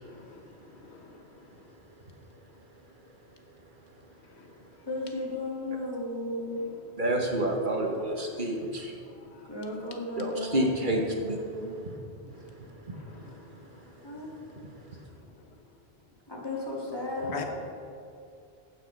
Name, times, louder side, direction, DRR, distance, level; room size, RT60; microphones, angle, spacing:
voice 1, 0.1-0.4 0.8-1.1 9.3-9.5 13.0-13.3 17.3-17.4, left 5 dB, 85° left, 3 dB, 1.4 m, -42 dB
voice 2, 4.8-6.6 9.4-11.7 14.0-14.3 16.3-17.4, left 1 dB, 20° left, -4 dB, 2.3 m, -35 dB
voice 3, 7.0-8.9 10.2-11.4 12.9-13.0, right 1 dB, 50° right, 1 dB, 1.3 m, -28 dB
15.5 x 6.3 x 5.2 m, 2.5 s
omnidirectional pair, 1.1 m